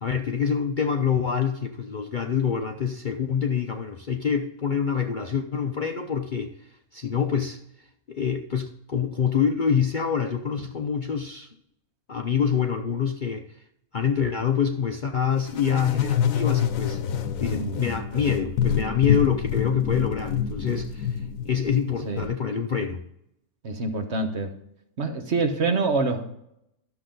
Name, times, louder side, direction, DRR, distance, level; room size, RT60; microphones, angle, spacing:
voice 1, 0.0-6.5 6.9-7.6 8.1-11.5 12.1-13.4 13.9-17.0 17.4-21.2 21.5-23.0, left 7 dB, 50° left, 4 dB, 0.6 m, -26 dB
sound 1, 15.5-22.3, left 8 dB, 75° left, 1.1 m, -27 dB
voice 2, 17.5-17.9 22.0-22.3 23.6-24.5 25.0-26.2, right 3 dB, 55° right, 6 dB, 1.3 m, -26 dB
12.0 x 7.0 x 3.8 m, 0.77 s
omnidirectional pair, 1.5 m